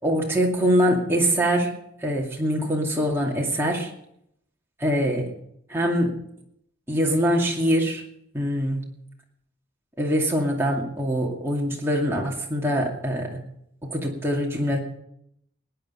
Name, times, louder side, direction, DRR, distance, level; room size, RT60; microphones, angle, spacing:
voice 1, 0.0-1.7 2.0-3.9 4.8-5.3 5.7-6.1 6.9-8.0 8.3-8.8 10.0-13.4 13.8-14.8, equal, 10° right, -2 dB, 2.4 m, -23 dB
18.5 x 9.8 x 5.6 m, 0.74 s
head